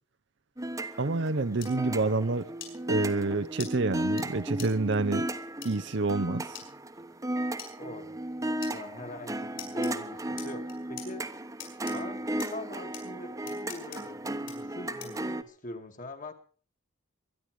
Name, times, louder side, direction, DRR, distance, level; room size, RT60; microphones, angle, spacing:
sound 1, 0.6-15.4, right 1 dB, 15° right, 1.1 m, -35 dB
voice 1, 1.0-2.5 2.9-5.3 5.6-6.4, right 3 dB, 60° right, 0.8 m, -28 dB
sound 2, 1.6-1.7 2.6-2.7 3.6-3.7 4.2-4.3 4.6-4.7 5.6-5.7 6.5-6.7 7.6-7.7 8.6-8.7 9.6-9.9 10.4-11.1 11.6-11.9 12.4-12.5 12.9-13.0 13.5-14.0 14.5-14.6 15.0-15.2, left 10 dB, 65° left, 6.4 m, -42 dB
voice 2, 7.8-11.2 11.9-12.2 12.5-16.3, left 2 dB, 40° left, 2.1 m, -43 dB
23.5 x 11.0 x 4.9 m
head